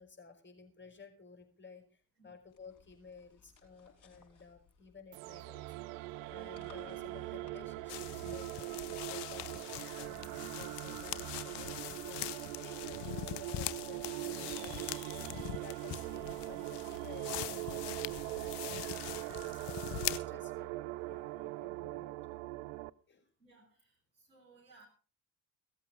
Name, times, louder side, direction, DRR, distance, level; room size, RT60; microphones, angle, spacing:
voice 1, 0.0-22.1 23.1-23.3, left 5 dB, 25° left, 4 dB, 4.9 m, -55 dB
sound 1, 2.5-5.2 6.1-8.3 8.8-10.0 10.5-13.4, left 6 dB, 40° left, 5.3 m, -64 dB
sound 2, 5.1-22.9, right 19 dB, 70° right, 0.6 m, -41 dB
sound 3, 7.9-20.2, left 14 dB, 55° left, 0.9 m, -43 dB
voice 2, 23.4-24.9, right 3 dB, 90° right, -2 dB, 4.2 m, -62 dB
17.0 x 14.0 x 3.6 m, 0.36 s
figure-of-eight pair, 45°, 48 cm